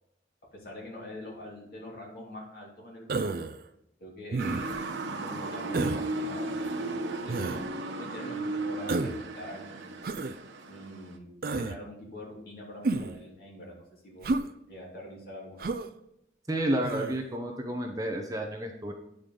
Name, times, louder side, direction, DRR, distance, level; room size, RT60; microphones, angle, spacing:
voice 1, 0.5-3.3 4.0-4.7 5.1-9.9 10.7-11.3 11.6-14.3 14.7-15.7, left 1 dB, 50° left, -4 dB, 2.8 m, -44 dB
Human voice, 3.1-3.6 4.3-4.8 5.7-6.1 7.3-7.6 8.9-9.2 10.0-10.4 11.4-11.8 12.8-13.2 14.2-14.5 15.6-15.9 16.8-17.2, right 3 dB, 50° right, 0.4 m, -30 dB
Motor vehicle (road) / Siren, 4.4-11.1, right 2 dB, 90° right, 0.9 m, -35 dB
voice 2, 16.5-18.9, right 1 dB, 20° right, 3 dB, 0.7 m, -31 dB
9.0 x 5.0 x 3.8 m, 0.81 s
head